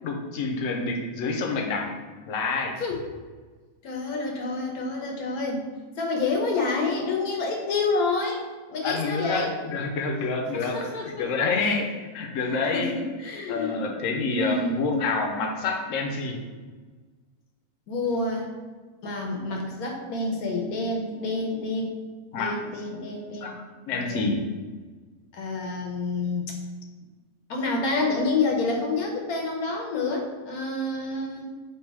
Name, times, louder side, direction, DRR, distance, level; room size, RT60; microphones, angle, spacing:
voice 1, 0.0-1.9 2.3-2.8 8.8-10.8 11.2-11.9 12.1-13.0 13.5-16.4 22.3-22.6 23.4-24.5, left 3 dB, 65° left, 2 dB, 0.9 m, -28 dB
voice 2, 3.8-5.6 6.0-8.4 8.7-9.5 10.5-11.8 12.7-13.9 14.3-14.7 17.9-18.5 19.0-21.9 22.3-23.5 24.1-24.3 25.3-26.5 27.5-31.4, left 3 dB, 85° left, 1 dB, 1.2 m, -28 dB
3.4 x 2.6 x 4.5 m, 1.4 s
omnidirectional pair, 1.5 m